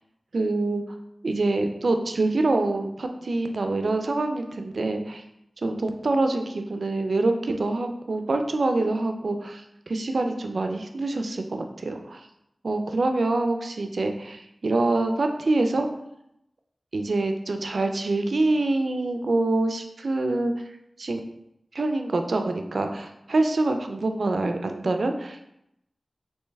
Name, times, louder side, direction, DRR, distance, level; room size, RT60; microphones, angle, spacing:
voice 1, 0.3-0.8 1.2-5.2 5.6-12.2 12.6-15.9 16.9-20.5 21.0-21.2 21.7-25.5, right 2 dB, 80° right, 5 dB, 0.4 m, -25 dB
3.2 x 2.9 x 3.3 m, 0.81 s
cardioid pair, 45°, 0 cm